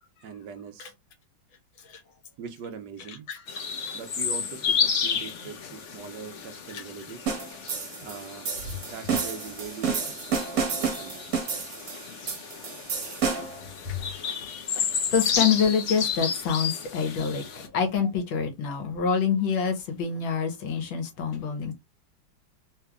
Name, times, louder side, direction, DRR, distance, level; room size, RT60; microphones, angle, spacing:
voice 1, 0.2-0.9 2.4-3.3 3.9-7.2 8.0-8.5 8.9-11.3, right 6 dB, 70° right, 1.2 m, -42 dB
voice 2, 3.3-4.0 13.8-21.7, left 6 dB, 80° left, 1.7 m, -27 dB
sound 1, 3.5-17.7, left 6 dB, 65° left, 0.7 m, -32 dB
sound 2, 7.3-13.6, right 5 dB, 50° right, 1.5 m, -30 dB
3.6 x 3.2 x 2.3 m
omnidirectional pair, 2.1 m